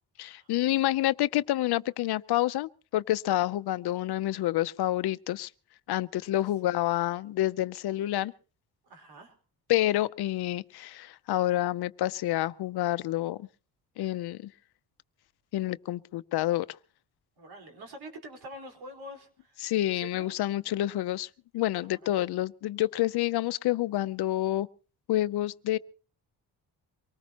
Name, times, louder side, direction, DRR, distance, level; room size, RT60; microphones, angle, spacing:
voice 1, 0.2-5.5 5.9-8.3 9.7-13.5 14.0-14.5 15.5-16.8 19.6-24.7 25.1-25.8, left 14 dB, 75° left, 0.7 m, -28 dB
voice 2, 8.8-9.4 17.4-19.6 19.9-20.3 21.8-22.1, right 1 dB, 75° right, 4.6 m, -46 dB
24.5 x 19.0 x 3.0 m
cardioid pair, 80°, 39 cm